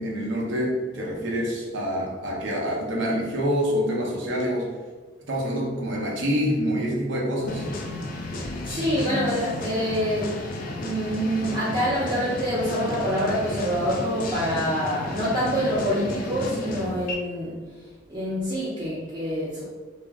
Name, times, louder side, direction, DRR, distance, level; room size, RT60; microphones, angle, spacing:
voice 1, 0.0-4.7 5.3-7.7, equal, 85° right, -3 dB, 0.6 m, -26 dB
sound 1, 7.4-17.1, left 2 dB, 50° left, 0.4 m, -33 dB
voice 2, 8.7-10.3 10.7-17.6 18.1-19.6, equal, 25° right, -11 dB, 0.6 m, -26 dB
2.4 x 2.0 x 3.4 m, 1.4 s
head